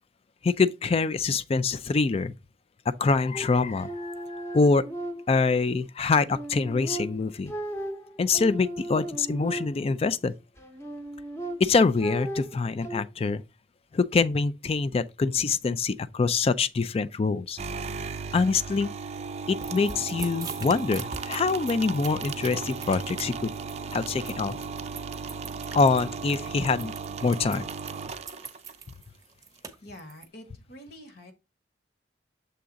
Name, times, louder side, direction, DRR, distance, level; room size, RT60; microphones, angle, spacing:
voice 1, 0.4-2.3 3.0-4.9 5.3-7.5 8.2-10.3 11.6-13.4 13.9-17.6 18.3-18.9 19.5-23.5 23.9-24.6 25.7-26.9 27.2-27.7, left 4 dB, 35° left, 0.3 m, -25 dB
sound 1, 3.3-5.6 6.1-10.1 10.6-13.0, right 1 dB, 15° left, 0.9 m, -36 dB
sound 2, 17.6-28.9, right 5 dB, 35° right, 0.4 m, -36 dB
sound 3, 19.6-30.3, right 5 dB, 20° right, 0.8 m, -42 dB
voice 2, 29.8-31.3, equal, 60° left, 1.5 m, -46 dB
6.8 x 3.7 x 3.9 m
head